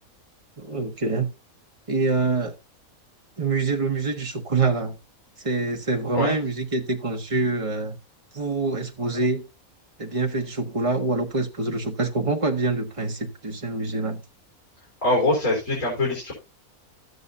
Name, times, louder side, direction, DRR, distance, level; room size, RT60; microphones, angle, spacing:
voice 1, 0.6-1.3 1.9-2.5 3.4-5.0 5.4-8.0 8.3-9.4 10.0-14.2, right 3 dB, 25° right, 1.4 m, -25 dB
voice 2, 15.0-16.3, left 1 dB, 65° left, 4.3 m, -23 dB
13.0 x 8.2 x 2.7 m
omnidirectional pair, 1.5 m